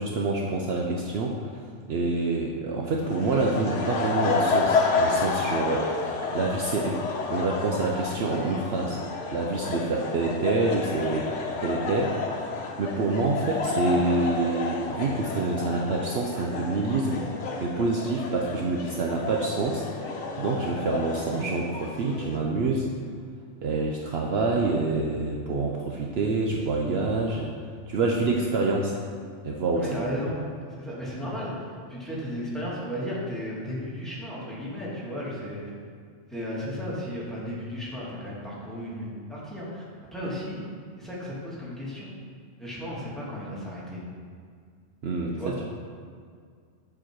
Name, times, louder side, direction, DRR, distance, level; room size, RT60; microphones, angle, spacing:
voice 1, 0.0-1.6 1.9-7.0 7.3-9.0 9.3-12.4 12.8-17.3 17.6-22.9 23.6-27.5 27.9-29.0 29.4-29.9 45.0-45.5, right 3 dB, 65° right, -1 dB, 0.9 m, -27 dB
sound 1, 3.0-22.4, left 4 dB, 75° left, 1.2 m, -30 dB
voice 2, 29.8-30.4 30.8-35.6 36.3-39.8 40.1-40.6 41.0-42.1 42.6-44.0 45.3-45.5, equal, ahead, -8 dB, 2.0 m, -34 dB
7.5 x 6.4 x 4.5 m, 2.2 s
omnidirectional pair, 1.2 m